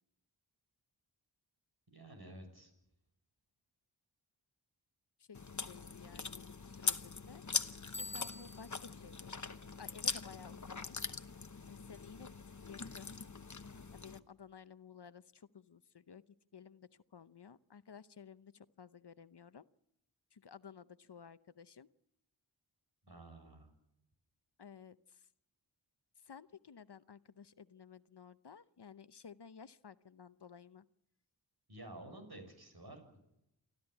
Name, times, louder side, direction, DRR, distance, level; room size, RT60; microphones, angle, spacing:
voice 1, 1.9-2.7 23.0-23.7 31.7-33.2, right 1 dB, 55° right, 6 dB, 6.9 m, -52 dB
voice 2, 5.2-9.4 9.8-11.0 11.7-12.3 12.7-13.1 13.9-16.2 16.5-19.7 20.3-21.9 24.6-25.3 26.2-30.9, left 6 dB, 60° left, 14 dB, 0.8 m, -55 dB
Chewing mastication, 5.3-14.2, left 4 dB, 40° left, 1.0 m, -42 dB
Bicycle bell, 7.9-8.9, left 2 dB, 5° left, 0.8 m, -46 dB
28.5 x 13.0 x 9.8 m, 0.86 s
wide cardioid pair, 40°, 45 cm